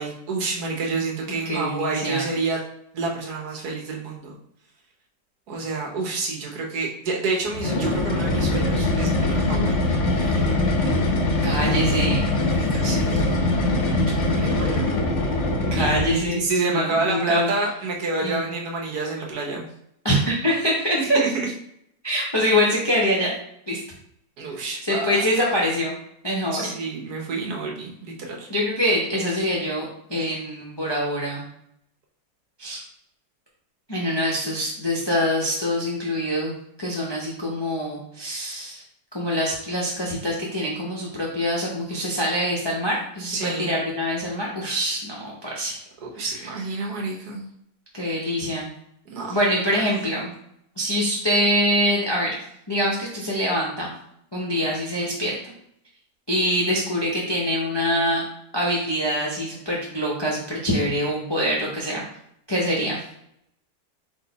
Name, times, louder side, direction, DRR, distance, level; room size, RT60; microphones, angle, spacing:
voice 1, 0.0-2.6 2.9-4.3 5.5-9.8 10.2-10.6 12.4-13.7 14.1-14.9 15.7-19.7 21.0-21.5 24.4-25.1 26.5-28.5 29.4-29.5 43.3-43.8 46.0-47.4 49.1-49.8 54.6-54.8, right 3 dB, 65° right, -1 dB, 1.4 m, -29 dB
voice 2, 1.4-2.3 11.4-12.3 15.7-16.4 16.7-17.5 18.2-18.5 20.0-21.2 22.0-23.3 23.7-23.8 24.8-25.9 26.2-26.7 28.5-31.4 32.6-32.8 33.9-38.8 39.1-45.8 46.2-46.3 47.9-48.7 49.3-50.3 50.8-52.4 52.7-53.9 54.3-55.5 56.3-58.2 58.5-62.0 62.5-63.0, equal, 35° left, -4 dB, 0.4 m, -24 dB
sound 1, 7.5-16.3, left 2 dB, 55° left, 0.9 m, -22 dB
4.2 x 2.7 x 3.9 m, 0.73 s
omnidirectional pair, 1.8 m